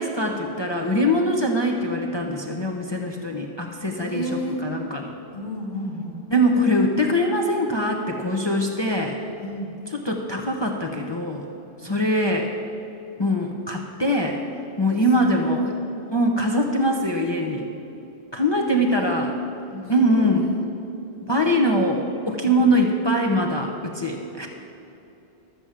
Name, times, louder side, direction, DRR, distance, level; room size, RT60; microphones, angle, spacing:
voice 1, 0.0-4.2 4.6-5.1 6.3-9.2 10.0-11.4 11.8-12.5 13.2-14.4 14.8-15.6 16.1-17.7 18.3-19.3 19.9-20.4 21.3-24.5, equal, 25° left, 1 dB, 0.8 m, -22 dB
voice 2, 3.9-4.7 5.3-6.2 9.4-9.7 11.8-12.0 14.9-15.7 16.7-17.2 18.6-19.1 19.7-20.6 21.4-21.8 22.4-22.6, equal, 55° left, -2 dB, 2.4 m, -33 dB
13.0 x 7.0 x 7.4 m, 2.9 s
omnidirectional pair, 1.1 m